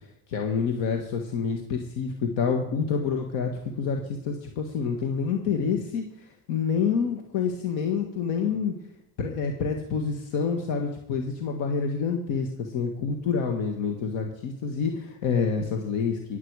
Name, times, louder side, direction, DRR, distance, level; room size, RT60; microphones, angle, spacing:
voice 1, 0.3-8.7 9.2-16.4, left 6 dB, 80° left, 3 dB, 1.7 m, -28 dB
19.0 x 8.3 x 4.8 m, 0.82 s
cardioid pair, 105°, 44 cm